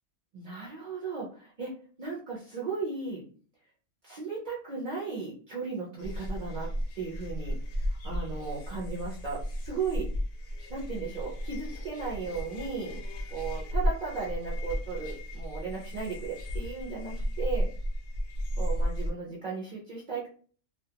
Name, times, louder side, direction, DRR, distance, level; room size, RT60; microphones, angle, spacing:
voice 1, 0.3-1.7 2.0-3.2 4.0-10.1 10.7-13.0 13.3-17.7 18.6-20.3, right 4 dB, 50° right, -5 dB, 0.5 m, -36 dB
sound 1, 6.0-19.1, equal, 60° left, 0.6 m, -34 dB
2.3 x 2.2 x 2.7 m, 0.43 s
omnidirectional pair, 1.4 m